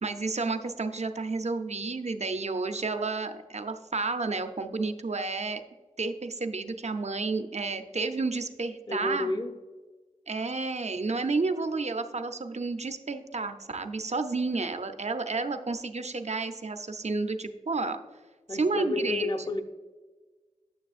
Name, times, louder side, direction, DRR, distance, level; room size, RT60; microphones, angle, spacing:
voice 1, 0.0-5.6 6.0-9.3 10.3-18.0 18.5-19.3, right 3 dB, 55° right, 7 dB, 0.6 m, -31 dB
voice 2, 8.9-9.6 18.5-19.6, left 2 dB, 35° left, 7 dB, 0.6 m, -30 dB
9.4 x 6.7 x 2.4 m, 1.3 s
wide cardioid pair, 50°, 14 cm